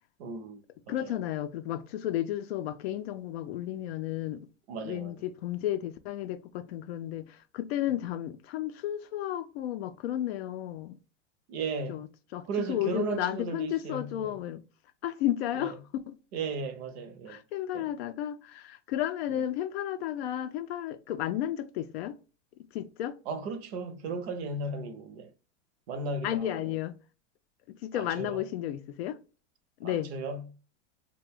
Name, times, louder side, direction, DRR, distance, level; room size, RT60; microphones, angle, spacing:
voice 1, 0.2-1.1 4.7-5.2 11.5-12.1 12.4-14.4 15.6-15.8 16.3-17.4 17.7-17.9 23.3-25.3 25.9-26.7 27.9-28.4 29.8-30.5, right 3 dB, 55° right, 0.7 m, -36 dB
voice 2, 0.9-4.5 4.8-11.0 11.9-14.6 15.0-16.2 17.3-22.2 22.7-23.2 26.2-27.0 27.7-29.2 29.8-30.1, left 12 dB, 55° left, 0.4 m, -33 dB
2.5 x 2.2 x 3.4 m
hypercardioid pair, 130°, 38 cm